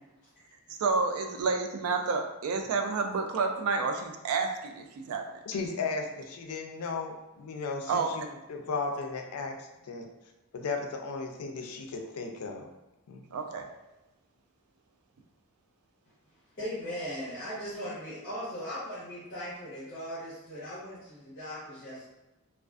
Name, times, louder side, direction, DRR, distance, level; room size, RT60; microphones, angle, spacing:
voice 1, 0.8-5.2 7.9-8.1 13.3-13.7, right 4 dB, 75° right, 5 dB, 0.3 m, -29 dB
voice 2, 5.5-10.1 10.5-12.7 13.1-13.2, left 4 dB, 85° left, 4 dB, 0.4 m, -35 dB
voice 3, 16.6-22.1, equal, 45° left, -10 dB, 0.8 m, -38 dB
2.4 x 2.3 x 2.3 m, 1.0 s
head